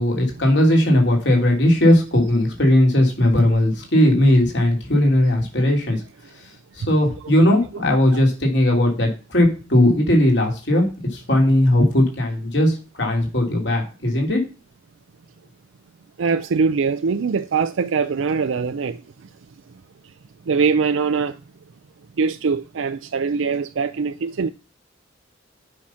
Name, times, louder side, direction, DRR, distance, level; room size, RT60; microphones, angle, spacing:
voice 1, 0.0-6.0 6.4-6.5 6.7-10.8 11.1-14.4, left 1 dB, 60° left, 3.1 m, -18 dB
voice 2, 16.2-19.0 20.5-21.4 22.2-24.5, right 5 dB, 75° right, 0.4 m, -22 dB
8.7 x 5.9 x 5.7 m
head